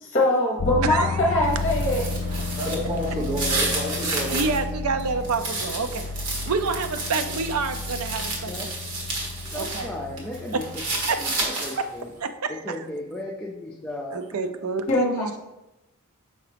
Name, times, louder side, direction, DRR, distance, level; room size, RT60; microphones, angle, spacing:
voice 1, 0.0-2.1 14.9-15.4, left 1 dB, 35° left, -2 dB, 0.9 m, -22 dB
sound 1, 0.6-11.3, left 4 dB, 60° left, 0.3 m, -32 dB
sound 2, 1.4-4.6 5.0-9.9 10.2-11.9, right 2 dB, 85° right, 1.6 m, -31 dB
voice 2, 2.5-4.4, equal, 30° right, -6 dB, 1.2 m, -30 dB
voice 3, 4.3-6.1 6.5-8.5 9.5-9.9 11.1-11.2 11.8-11.9 12.2-12.8 14.1-15.4, right 4 dB, 70° right, 8 dB, 0.5 m, -28 dB
voice 4, 9.4-10.8 11.2-12.1 12.5-14.2, left 1 dB, 5° left, -3 dB, 0.5 m, -35 dB
6.5 x 4.8 x 3.4 m, 0.97 s
head